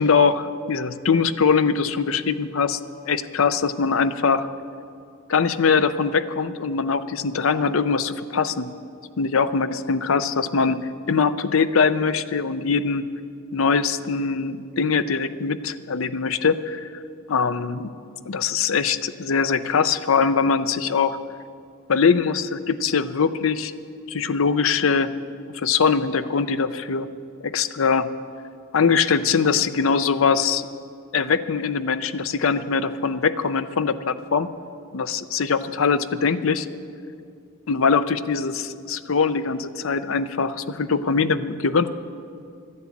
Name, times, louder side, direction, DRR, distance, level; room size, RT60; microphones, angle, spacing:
voice 1, 0.0-2.8 3.1-4.5 5.3-8.7 9.2-10.8 11.1-13.0 13.5-17.0 17.3-17.9 18.3-21.2 21.9-23.7 24.1-25.1 25.5-27.1 27.4-28.1 28.7-30.6 31.1-34.5 34.9-36.7 37.7-41.9, left 5 dB, 65° left, 12 dB, 0.6 m, -22 dB
11.5 x 11.0 x 8.4 m, 2.4 s
head